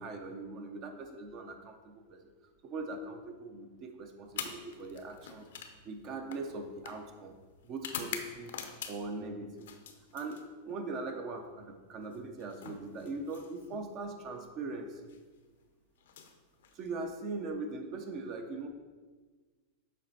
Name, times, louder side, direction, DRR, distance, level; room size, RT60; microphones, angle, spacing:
voice 1, 0.0-2.3 2.6-5.5 5.8-7.3 7.6-9.7 10.1-15.1 16.7-18.7, right 3 dB, 40° right, 5 dB, 0.7 m, -41 dB
sound 1, 4.3-9.2 9.6-10.8 12.0-13.9 14.9-15.2 16.0-17.1, left 7 dB, 80° left, 0.7 m, -45 dB
7.5 x 4.1 x 4.2 m, 1.4 s
supercardioid pair, 135°, 0 cm